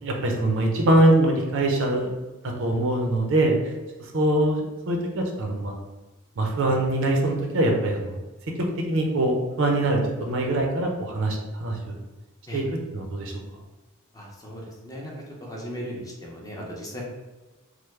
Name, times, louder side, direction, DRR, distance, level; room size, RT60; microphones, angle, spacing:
voice 1, 0.0-2.1 2.4-3.6 4.1-5.8 6.4-8.1 8.9-12.0 12.5-12.6 12.9-13.4, right 1 dB, 60° right, 2 dB, 0.5 m, -23 dB
voice 2, 14.1-15.1 15.4-17.0, equal, 15° left, -2 dB, 0.6 m, -37 dB
3.3 x 2.0 x 3.1 m, 1.2 s
head